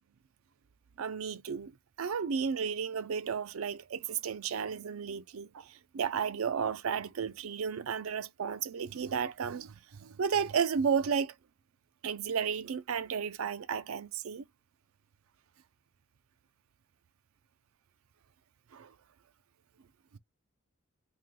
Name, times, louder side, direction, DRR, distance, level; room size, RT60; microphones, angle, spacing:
voice 1, 1.0-11.3 12.0-14.5 18.7-18.9 20.1-20.2, right 6 dB, 90° right, 0.4 m, -33 dB
3.2 x 2.8 x 3.6 m
head